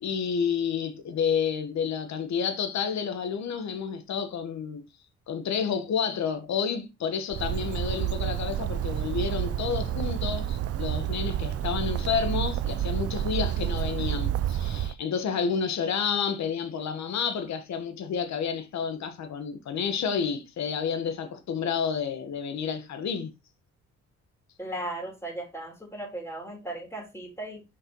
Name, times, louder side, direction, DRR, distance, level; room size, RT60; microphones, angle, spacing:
voice 1, 0.0-4.8 5.3-23.3, left 6 dB, 65° left, 1.3 m, -30 dB
Bird, 7.3-14.9, right 11 dB, 55° right, 0.5 m, -29 dB
voice 2, 24.6-27.6, right 1 dB, 10° left, 3.6 m, -36 dB
6.6 x 5.6 x 2.9 m
cardioid pair, 90°, 30 cm